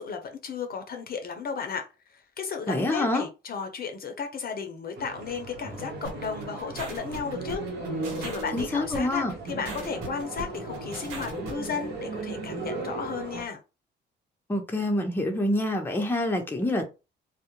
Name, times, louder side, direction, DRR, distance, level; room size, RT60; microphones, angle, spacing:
voice 1, 0.0-7.6 8.2-13.6, left 6 dB, 50° left, 0.6 m, -34 dB
voice 2, 2.7-3.2 8.5-9.3 14.5-16.9, left 1 dB, 10° left, 0.6 m, -26 dB
sound 1, 5.0-13.4, right 2 dB, 55° right, 0.9 m, -36 dB
sound 2, 6.0-11.7, right 3 dB, 90° right, 0.8 m, -39 dB
2.3 x 2.0 x 2.9 m
cardioid pair, 90°, 20 cm